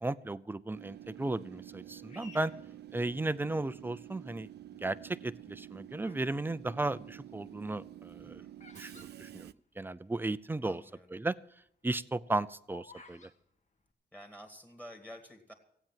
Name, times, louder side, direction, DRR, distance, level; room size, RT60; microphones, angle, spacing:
voice 1, 0.0-2.5 2.9-4.5 4.8-8.4 8.8-9.5 9.8-10.8 11.1-11.4 11.8-13.3, right 2 dB, 10° right, 16 dB, 0.5 m, -35 dB
Train / Subway metro underground, 0.7-9.5, right 12 dB, 65° right, 0.5 m, -49 dB
Bird vocalization bird call bird song, 2.1-3.6 4.2-4.7 5.4-6.3 6.6-10.1 10.4-10.5 10.6-11.0 11.4-13.3, left 2 dB, 40° left, 1.9 m, -56 dB
voice 2, 8.2-8.6 10.6-11.1 14.1-15.5, equal, 10° left, 5 dB, 2.2 m, -51 dB
16.0 x 9.0 x 7.4 m, 0.70 s
wide cardioid pair, 125°, 18 cm